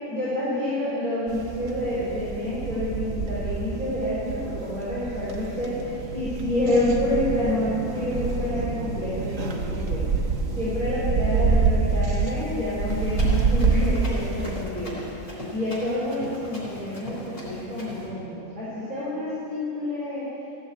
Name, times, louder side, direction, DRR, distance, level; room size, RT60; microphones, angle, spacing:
voice 1, 0.0-10.0 10.5-15.0 15.5-20.3, left 1 dB, 30° right, -12 dB, 4.3 m, -28 dB
sound 1, 1.3-14.7, right 4 dB, 60° right, 1.4 m, -27 dB
Run, 12.8-18.1, left 1 dB, 55° left, 4.0 m, -39 dB
16.0 x 7.8 x 8.3 m, 2.9 s
omnidirectional pair, 1.6 m